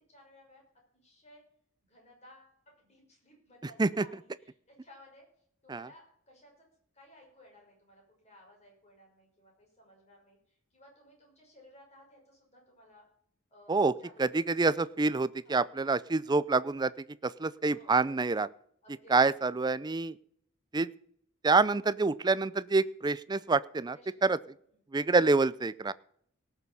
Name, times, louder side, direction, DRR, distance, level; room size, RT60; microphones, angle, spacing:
voice 1, 0.1-0.6 0.9-1.4 1.9-5.3 5.6-6.7 6.9-13.0 13.5-14.7 15.4-15.6 17.7-18.0 18.8-19.2 23.9-24.5, left 1 dB, 30° left, 0 dB, 5.8 m, -58 dB
voice 2, 14.2-16.9 17.2-18.5 19.1-20.1 20.7-20.9 21.4-24.0 24.2-24.4 24.9-25.9, right 3 dB, 20° right, 17 dB, 0.4 m, -27 dB
18.5 x 6.8 x 5.5 m, 0.68 s
head